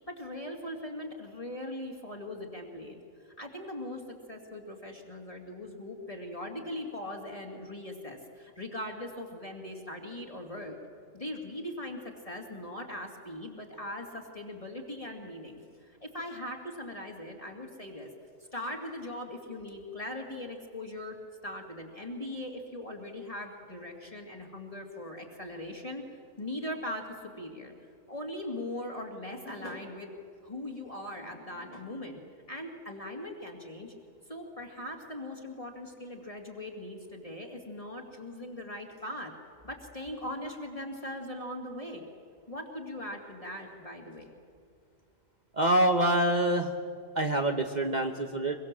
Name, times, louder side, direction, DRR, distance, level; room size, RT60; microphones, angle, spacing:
voice 1, 0.1-3.0 3.4-10.8 11.1-15.6 16.0-18.1 18.5-21.2 21.4-26.0 26.4-27.7 28.1-30.1 30.4-32.2 32.5-33.9 34.3-39.3 39.6-42.0 42.5-44.3, left 1 dB, 25° left, 0 dB, 2.3 m, -40 dB
voice 2, 45.5-46.7 47.1-48.6, right 1 dB, 35° right, 4 dB, 1.2 m, -26 dB
23.5 x 23.0 x 7.5 m, 2.3 s
omnidirectional pair, 1.3 m